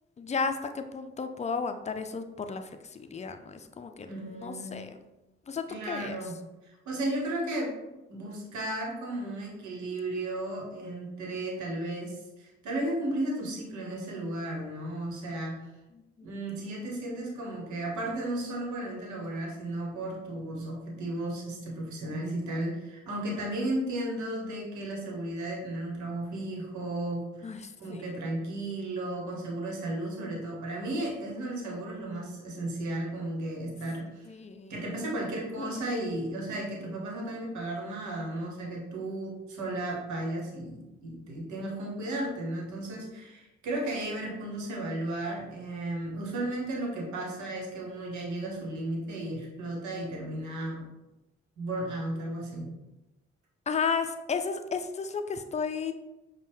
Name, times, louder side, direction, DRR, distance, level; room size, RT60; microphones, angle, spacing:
voice 1, 0.2-4.9 5.5-6.2 16.2-16.3 27.4-28.1 34.3-34.8 35.6-35.8 53.7-55.9, left 5 dB, 25° left, 7 dB, 0.5 m, -33 dB
voice 2, 4.1-4.8 5.7-6.3 6.6-7.7 8.1-15.6 16.2-34.3 34.7-50.9 51.6-52.7, right 1 dB, 70° right, -1 dB, 1.1 m, -34 dB
5.2 x 2.3 x 3.4 m, 1.0 s
hypercardioid pair, 40°, 30 cm